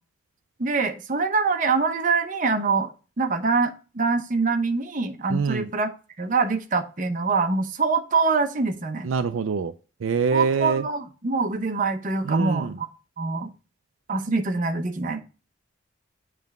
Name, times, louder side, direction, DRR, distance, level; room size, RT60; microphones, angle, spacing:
voice 1, 0.6-2.9 3.2-5.9 6.2-9.1 10.3-12.9 13.2-13.5 14.1-15.2, right 4 dB, 40° right, 0.8 m, -24 dB
voice 2, 5.3-5.7 9.0-9.7 10.0-10.8 12.2-12.7, right 5 dB, 75° right, 0.4 m, -24 dB
7.1 x 3.3 x 5.3 m
head